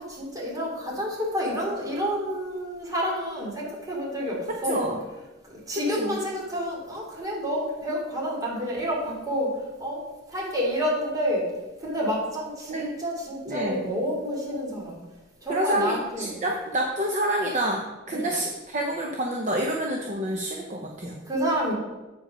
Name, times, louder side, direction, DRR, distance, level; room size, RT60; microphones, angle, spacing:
voice 1, 0.0-4.8 5.4-9.5 9.8-10.0 10.3-11.5 11.8-15.0 15.4-16.3 21.2-21.7, equal, 20° right, -4 dB, 2.7 m, -29 dB
voice 2, 4.7-5.0 6.0-6.2 12.7-12.9 13.5-13.8 15.5-21.2, right 1 dB, 40° right, 1 dB, 0.8 m, -28 dB
8.5 x 5.0 x 5.5 m, 1.1 s
head